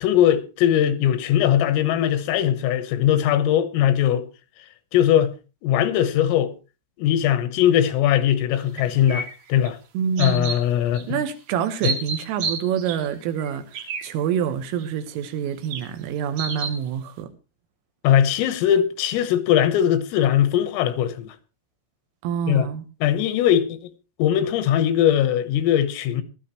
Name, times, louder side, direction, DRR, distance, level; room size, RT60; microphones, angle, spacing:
voice 1, 0.0-4.3 4.9-5.3 5.6-6.5 7.0-9.8 10.2-11.2 11.8-11.9 18.0-21.3 22.5-22.7 23.0-23.9 24.2-26.2, left 10 dB, 85° left, 3.6 m, -20 dB
sound 1, 8.8-9.7 10.2-10.6 10.9-11.0 11.7-13.1 13.4-14.1 14.8-14.9 15.6-15.8 16.4-16.8, right 4 dB, 55° right, 3.0 m, -30 dB
voice 2, 10.0-10.5 11.1-17.3 22.2-22.8, right 8 dB, 80° right, 3.8 m, -27 dB
19.0 x 13.0 x 3.0 m
omnidirectional pair, 5.9 m